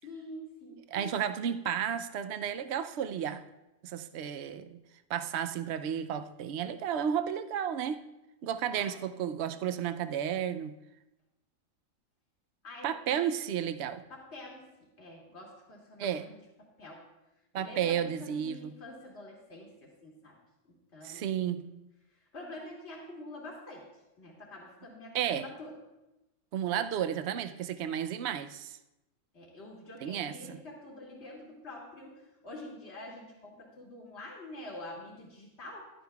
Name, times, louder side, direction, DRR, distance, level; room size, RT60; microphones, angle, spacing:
voice 1, 0.0-0.8 8.8-9.0 12.6-13.1 14.1-17.1 17.6-20.4 20.6-21.6 22.1-23.9 24.2-25.8 29.3-35.9, left 1 dB, 55° left, -3 dB, 2.5 m, -47 dB
voice 2, 0.9-3.4 3.8-4.8 5.1-8.0 8.4-10.8 12.8-14.0 16.0-16.3 17.5-18.7 21.0-21.7 25.1-25.5 26.5-28.8 30.0-30.6, right 9 dB, 65° right, 9 dB, 0.8 m, -32 dB
15.5 x 11.5 x 2.3 m, 0.96 s
omnidirectional pair, 1.4 m